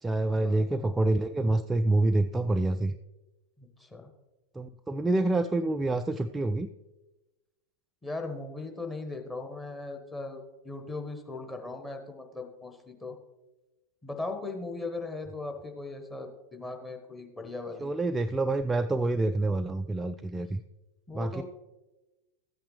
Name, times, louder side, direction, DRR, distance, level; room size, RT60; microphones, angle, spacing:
voice 1, 0.0-3.0 4.5-6.7 17.8-20.6 21.1-21.4, right 2 dB, 10° right, 9 dB, 0.3 m, -27 dB
voice 2, 3.6-4.1 8.0-13.2 14.0-17.9 21.1-21.4, left 3 dB, 10° left, 4 dB, 1.3 m, -38 dB
14.0 x 8.6 x 3.2 m, 1.1 s
figure-of-eight pair, 90°, 0 cm